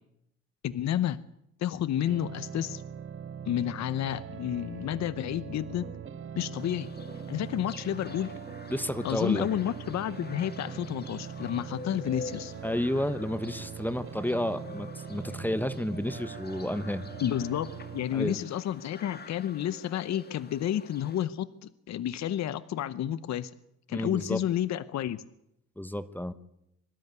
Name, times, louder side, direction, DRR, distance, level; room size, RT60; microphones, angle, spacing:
voice 1, 0.6-1.2 1.6-2.8 3.5-5.9 6.4-6.9 7.3-8.3 9.0-12.5 17.2-23.5 23.9-25.2, left 11 dB, 65° left, 16 dB, 0.8 m, -30 dB
sound 1, 2.1-18.1, right 8 dB, 45° right, 0.8 m, -42 dB
sound 2, 5.6-6.6 7.0-7.5 8.4-8.9 9.3-10.3 10.7-11.2 12.0-12.6, right 2 dB, 20° right, 3.9 m, -49 dB
sound 3, 6.6-21.2, left 4 dB, 30° left, 1.9 m, -47 dB
voice 2, 8.7-9.5 12.6-17.1 18.1-18.4 23.9-24.4 25.8-26.3, left 1 dB, 5° left, 13 dB, 1.1 m, -31 dB
23.5 x 13.0 x 9.5 m, 0.81 s
cardioid pair, 90°, 30 cm